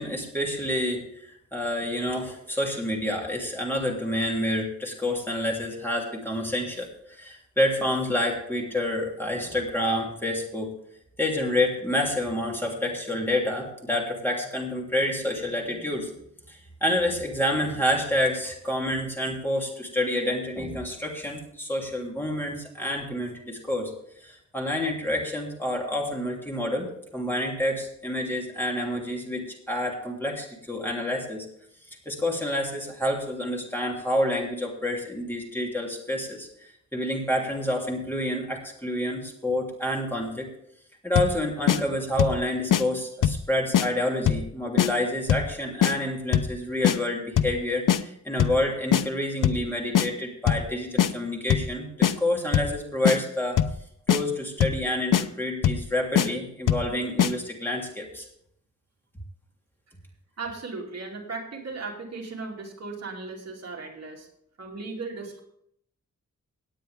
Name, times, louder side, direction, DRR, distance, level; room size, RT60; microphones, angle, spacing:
voice 1, 0.0-10.7 11.2-16.1 16.5-23.9 24.2-31.5 32.0-40.5 41.0-53.6 54.1-58.2, left 1 dB, 5° left, -1 dB, 3.0 m, -28 dB
sound 1, 41.2-41.4 41.7-41.8 42.2-42.4 42.7-42.8 43.2-43.5 43.7-43.9 44.3-44.5 44.8-44.9 45.3-45.5 45.8-45.9 46.3-46.6 46.8-47.0 47.4-47.6 47.9-48.0 48.4-48.6 48.9-49.0 49.4-49.7 50.0-50.1 50.5-50.7 51.0-51.1 51.5-51.7 52.0-52.1 52.5-52.8 53.1-53.2 53.6-53.8 54.1-54.2 54.6-54.8 55.1-55.3 55.6-55.9 56.2-56.3 56.7-56.9 57.2-57.3, left 10 dB, 90° left, 0.7 m, -21 dB
voice 2, 60.4-64.3 64.6-65.4, right 3 dB, 55° right, -2 dB, 2.8 m, -36 dB
18.0 x 9.1 x 3.5 m, 0.72 s
wide cardioid pair, 150°, 31 cm